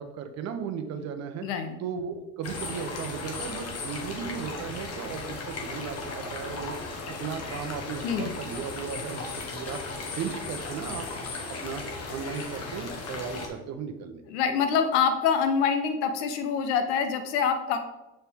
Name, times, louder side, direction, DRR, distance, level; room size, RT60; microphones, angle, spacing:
voice 1, 0.0-1.4 1.8-6.9 7.2-11.1 11.3-14.2, right 7 dB, 50° right, 8 dB, 0.8 m, -36 dB
voice 2, 1.4-1.8 8.0-8.3 14.3-17.8, left 6 dB, 85° left, 8 dB, 0.9 m, -25 dB
sound 1, 2.4-13.5, left 3 dB, 45° left, 1.2 m, -36 dB
6.7 x 4.5 x 3.5 m, 1.0 s
supercardioid pair, 110°, 34 cm